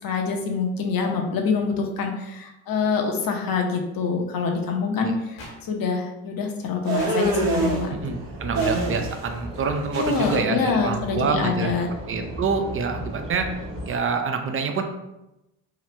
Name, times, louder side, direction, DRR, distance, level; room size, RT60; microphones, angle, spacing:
voice 1, 0.0-8.1 9.9-11.9, left 5 dB, 50° left, 3 dB, 0.7 m, -25 dB
sound 1, 5.4-5.5 7.0-7.1 8.6-8.7 10.2-10.3, left 2 dB, 70° left, 1.2 m, -38 dB
sound 2, 6.9-7.8 8.6-9.3 9.6-10.4, right 2 dB, 65° right, 1.0 m, -25 dB
sound 3, 7.2-14.0, equal, 10° right, 1.0 m, -36 dB
voice 2, 7.9-11.8 12.1-13.5 13.9-14.8, right 5 dB, 30° right, 5 dB, 0.5 m, -26 dB
2.9 x 2.4 x 3.1 m, 0.93 s
hypercardioid pair, 60°, 46 cm